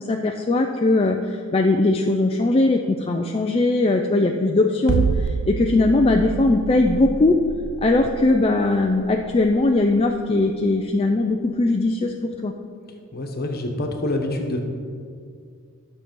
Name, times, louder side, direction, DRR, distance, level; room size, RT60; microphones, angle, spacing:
voice 1, 0.0-7.4 7.8-12.5, left 2 dB, 25° left, 2 dB, 0.4 m, -20 dB
sound 1, 4.9-11.1, right 6 dB, 55° right, 0.3 m, -28 dB
voice 2, 13.1-14.6, left 1 dB, 45° left, 3 dB, 1.2 m, -26 dB
11.0 x 6.9 x 5.3 m, 2.3 s
head